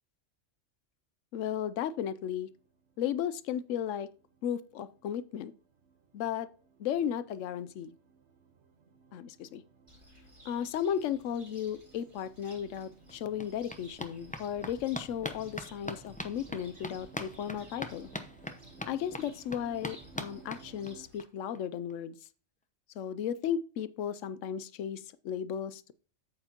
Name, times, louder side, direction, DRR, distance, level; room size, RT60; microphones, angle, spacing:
voice 1, 1.3-2.5 3.0-4.1 4.4-5.5 6.1-6.5 6.8-7.9 9.1-9.6 10.4-18.1 18.9-22.2 23.0-25.9, left 9 dB, 90° left, 14 dB, 1.0 m, -35 dB
sound 1, 1.6-21.1, right 5 dB, 65° right, 1.4 m, -59 dB
Cricket, 9.9-21.2, equal, 25° right, 1.9 m, -58 dB
sound 2, 12.4-12.5 12.8-21.2 21.5-21.6 21.9-22.0 22.2-22.3, left 1 dB, 10° left, 0.6 m, -43 dB
8.8 x 8.0 x 2.9 m, 0.38 s
omnidirectional pair, 1.3 m